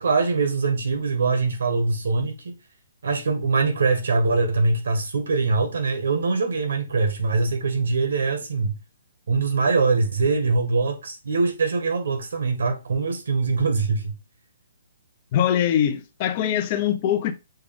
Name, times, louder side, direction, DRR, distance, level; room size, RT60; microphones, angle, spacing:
voice 1, 0.0-2.6 3.0-8.7 9.3-14.1, right 4 dB, 75° right, 1.5 m, -23 dB
voice 2, 15.3-17.3, left 10 dB, 35° left, 0.6 m, -22 dB
6.5 x 2.3 x 3.5 m
hypercardioid pair, 155°, 0 cm